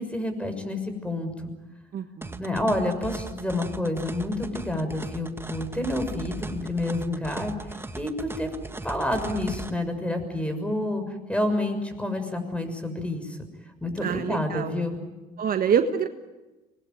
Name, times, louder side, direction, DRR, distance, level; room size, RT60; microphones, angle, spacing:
voice 1, 0.0-1.5 2.4-7.5 7.9-8.5 8.8-13.4 13.8-15.0, left 1 dB, 5° left, 8 dB, 6.5 m, -29 dB
voice 2, 1.9-2.4 14.0-14.7 15.4-16.1, right 7 dB, 50° right, 8 dB, 1.5 m, -26 dB
sound 1, 2.2-9.7, right 2 dB, 10° right, 1.7 m, -38 dB
25.5 x 20.5 x 9.3 m, 1.1 s
supercardioid pair, 75°, 19 cm